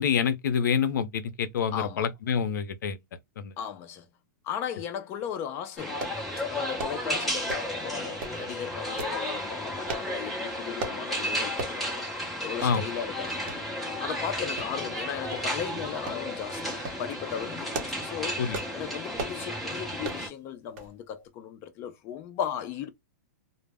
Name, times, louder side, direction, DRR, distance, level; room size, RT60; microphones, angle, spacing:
voice 1, 0.0-3.0 3.4-3.5 12.6-12.8 18.4-18.6, left 7 dB, 80° left, 0.5 m, -27 dB
voice 2, 1.7-2.1 3.6-4.1 4.4-6.1 6.5-12.1 12.4-13.6 14.0-17.7 18.0-18.4 18.7-22.9, left 8 dB, 25° left, 0.4 m, -36 dB
sound 1, 5.8-20.3, equal, ahead, 0.8 m, -33 dB
sound 2, 6.0-6.2 6.8-7.0 7.5-7.8 8.2-8.4 9.0-9.2 9.9-10.1 10.8-11.0 11.6-11.8 12.2-12.3 12.6-12.8 13.5-13.6 14.6-15.0 15.3-15.5 16.1-16.2 16.7-17.0 17.5-18.0 18.5-18.7 19.2-19.4 20.0-20.3 20.8-20.9 21.2-21.3, right 3 dB, 40° right, 0.7 m, -36 dB
2.0 x 2.0 x 3.3 m
hypercardioid pair, 160°, 10 cm